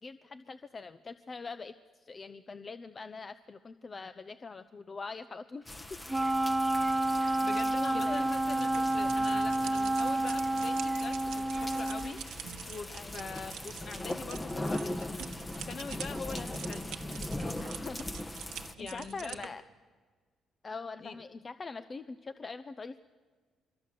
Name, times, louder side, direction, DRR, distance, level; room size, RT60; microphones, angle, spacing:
voice 1, 0.0-5.9 7.2-7.5 7.9-8.3 12.9-13.2 16.4-16.6 17.6-18.3 18.6-19.6 20.6-23.0, left 4 dB, 35° left, 11 dB, 0.8 m, -43 dB
sound 1, 5.7-18.7, left 1 dB, 15° left, 1.2 m, -40 dB
Wind instrument woodwind instrument, 6.1-12.2, right 1 dB, 15° right, 0.8 m, -29 dB
voice 2, 7.2-15.1 15.5-17.6 18.8-19.4 21.0-21.2, left 5 dB, 55° left, 9 dB, 1.6 m, -43 dB
sound 2, 8.2-19.5, right 10 dB, 85° right, 1.4 m, -47 dB
25.5 x 23.5 x 7.8 m, 1.5 s
cardioid pair, 90°, 0 cm